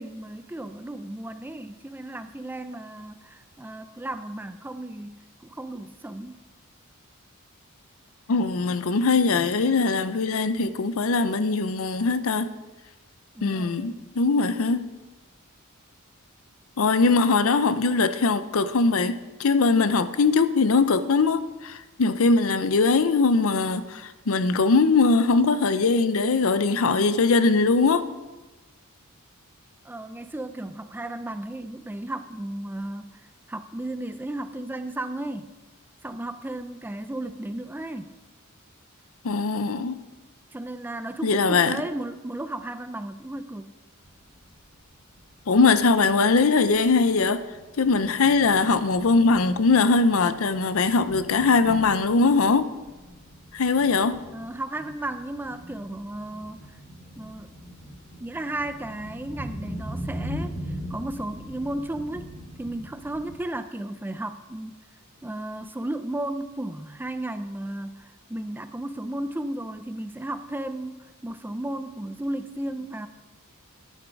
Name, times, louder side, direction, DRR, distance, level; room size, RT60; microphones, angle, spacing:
voice 1, 0.0-6.4 13.3-14.1 29.8-35.5 36.0-38.1 40.5-43.8 54.3-56.8 57.1-57.5 58.2-62.3 62.6-64.8 65.2-73.1, right 1 dB, 10° right, 0.4 m, -34 dB
voice 2, 8.3-12.5 13.4-14.9 16.8-28.0 39.2-40.0 41.2-41.8 45.5-47.4 47.8-52.7 53.5-54.2, left 4 dB, 70° left, 0.6 m, -21 dB
Thunder, 44.0-63.3, equal, 25° left, 2.0 m, -41 dB
10.0 x 9.1 x 4.7 m
head